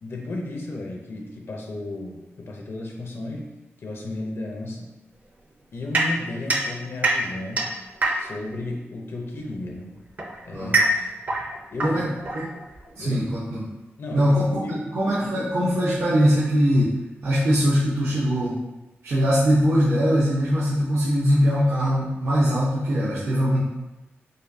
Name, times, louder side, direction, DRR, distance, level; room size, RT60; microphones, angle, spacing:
voice 1, 0.0-3.5 3.8-4.9 5.7-7.7 8.2-9.9 10.4-10.9 11.7-12.1 13.0-13.2 14.0-14.4 14.6-14.9 15.1-15.4, left 2 dB, 65° left, 0 dB, 0.6 m, -33 dB
sound 1, 5.9-8.5 9.6-12.9, right 2 dB, 40° right, 0.5 m, -25 dB
voice 2, 13.0-13.6 14.1-14.7 14.9-16.9 17.2-18.5 19.0-23.7, equal, 75° right, -9 dB, 0.7 m, -21 dB
5.1 x 2.2 x 2.7 m, 1.0 s
wide cardioid pair, 110°, 5 cm